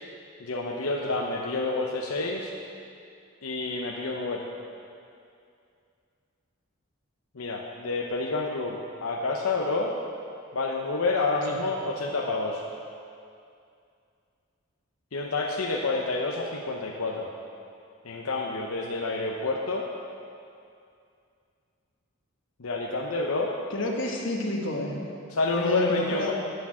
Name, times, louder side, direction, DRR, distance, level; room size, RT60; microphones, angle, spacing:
voice 1, 0.4-2.5 3.4-4.4 7.3-9.9 10.5-12.6 15.1-17.3 18.0-19.9 22.6-23.5 25.3-26.3, left 3 dB, 85° left, 0 dB, 0.8 m, -28 dB
voice 2, 23.7-25.0 25.5-26.3, left 1 dB, 60° left, 0 dB, 1.4 m, -30 dB
8.5 x 8.0 x 7.3 m, 2.4 s
head